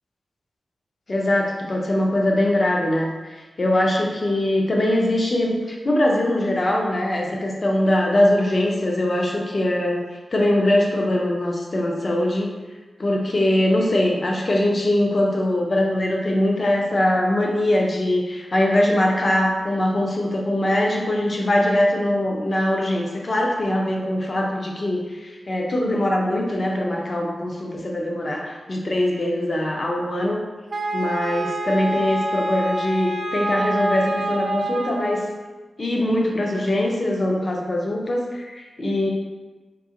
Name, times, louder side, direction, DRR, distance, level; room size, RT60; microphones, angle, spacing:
voice 1, 1.1-10.0 10.3-12.5 13.0-30.4 30.9-35.2 35.8-39.1, left 1 dB, 40° left, -1 dB, 0.5 m, -22 dB
Wind instrument woodwind instrument, 30.7-35.3, right 1 dB, 55° right, 0.3 m, -27 dB
3.7 x 2.7 x 2.8 m, 1.3 s
wide cardioid pair, 120°, 0 cm